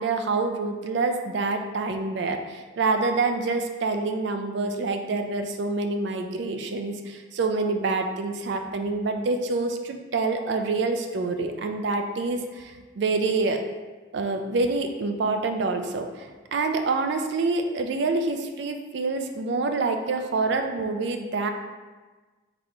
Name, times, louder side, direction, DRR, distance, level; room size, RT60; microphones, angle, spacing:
voice 1, 0.0-13.6 14.1-21.5, right 3 dB, 60° right, 5 dB, 0.4 m, -27 dB
4.0 x 3.4 x 2.9 m, 1.3 s
head